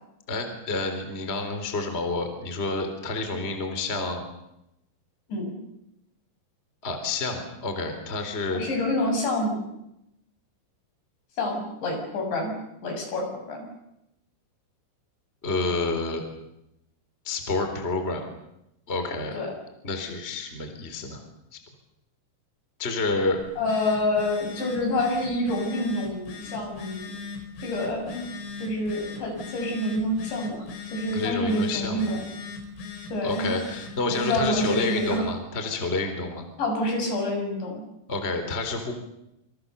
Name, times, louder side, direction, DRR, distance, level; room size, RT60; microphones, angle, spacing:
voice 1, 0.3-4.2 6.8-8.6 15.4-16.2 17.2-18.3 18.9-19.4 19.8-21.2 22.8-23.4 31.1-32.2 33.2-36.5 38.1-38.9, left 3 dB, 15° left, 6 dB, 3.3 m, -29 dB
voice 2, 8.5-9.6 11.4-12.5 12.8-13.6 19.3-19.5 23.6-27.1 27.6-28.2 28.6-32.2 33.1-33.5 34.1-35.3 36.6-37.8, left 1 dB, 65° left, 3 dB, 9.2 m, -27 dB
Telephone, 23.4-35.3, left 4 dB, 80° left, 7.1 m, -39 dB
27.5 x 27.0 x 6.9 m, 0.85 s
omnidirectional pair, 5.6 m